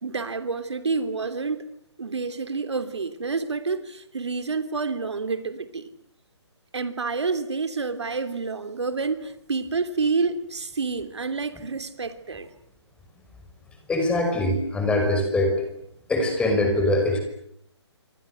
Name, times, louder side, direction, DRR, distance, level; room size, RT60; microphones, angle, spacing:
voice 1, 0.0-1.7 2.0-5.9 6.7-12.5, right 4 dB, 70° right, 3.1 m, -28 dB
voice 2, 13.9-15.7 16.1-17.2, left 1 dB, 5° left, 5.6 m, -22 dB
27.0 x 26.0 x 8.0 m
figure-of-eight pair, 140°, 15 cm